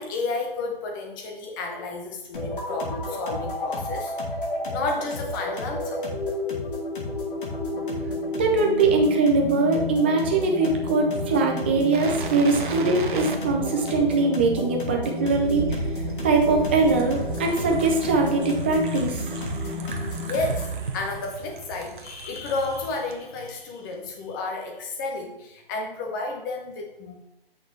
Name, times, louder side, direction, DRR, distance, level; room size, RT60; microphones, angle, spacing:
voice 1, 0.0-4.2 4.7-6.1 20.2-27.2, left 3 dB, 20° left, 2 dB, 1.1 m, -31 dB
sound 1, 2.3-20.8, left 2 dB, 60° left, 2.4 m, -31 dB
voice 2, 8.3-15.8 16.2-19.2, right 3 dB, 10° right, 1 dB, 0.5 m, -22 dB
sound 2, 11.9-23.1 23.5-23.6, right 5 dB, 55° right, 1.0 m, -36 dB
7.9 x 6.1 x 3.2 m, 0.88 s
figure-of-eight pair, 145°, 30 cm